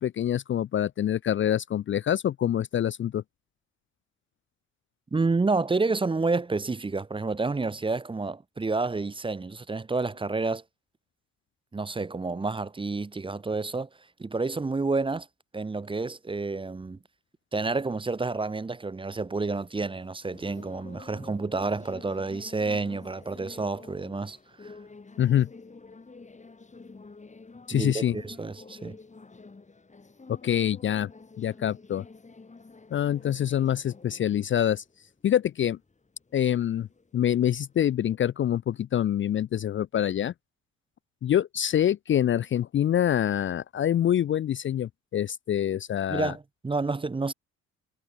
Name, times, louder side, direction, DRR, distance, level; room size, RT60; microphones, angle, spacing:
voice 1, 0.0-3.2 25.2-25.5 27.7-28.2 30.4-31.1 31.4-32.0 32.9-34.8 35.2-35.8 36.3-36.9 37.1-40.3 41.2-46.3, left 10 dB, 40° left, 0.4 m, -25 dB
voice 2, 5.1-10.6 11.7-13.9 14.2-15.3 15.5-17.0 17.5-24.8 27.7-29.0 46.1-47.3, right 3 dB, 15° right, 0.7 m, -29 dB
sound 1, 19.4-37.8, left 3 dB, 25° left, 4.1 m, -50 dB
cardioid pair, 90°, 30 cm